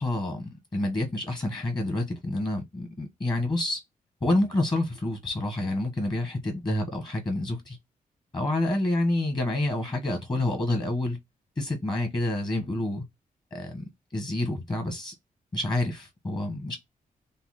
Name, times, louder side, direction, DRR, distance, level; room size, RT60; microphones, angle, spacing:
voice 1, 0.0-3.8 4.2-7.8 8.3-11.2 11.6-13.0 13.5-13.8 14.1-15.1 15.5-16.8, left 1 dB, 30° left, 1.2 m, -28 dB
5.4 x 2.0 x 4.1 m
wide cardioid pair, 140°, 15 cm